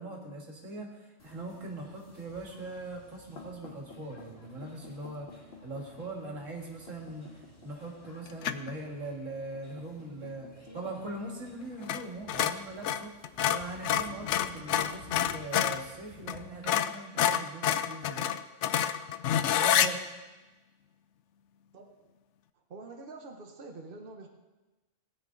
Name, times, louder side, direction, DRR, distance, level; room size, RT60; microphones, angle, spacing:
voice 1, 0.0-5.3 5.6-7.3 7.6-13.1 13.5-18.3 19.6-20.0, right 2 dB, 85° right, 0 dB, 2.5 m, -41 dB
sound 1, 1.2-16.7, left 2 dB, 55° left, 2.2 m, -52 dB
sound 2, 8.4-8.7 11.8-12.0 12.3-15.8 16.3-16.4 16.7-19.9, left 10 dB, 70° left, 0.9 m, -27 dB
voice 2, 22.7-24.3, right 3 dB, 45° right, 3 dB, 1.2 m, -46 dB
17.5 x 9.5 x 4.0 m, 1.2 s
omnidirectional pair, 1.3 m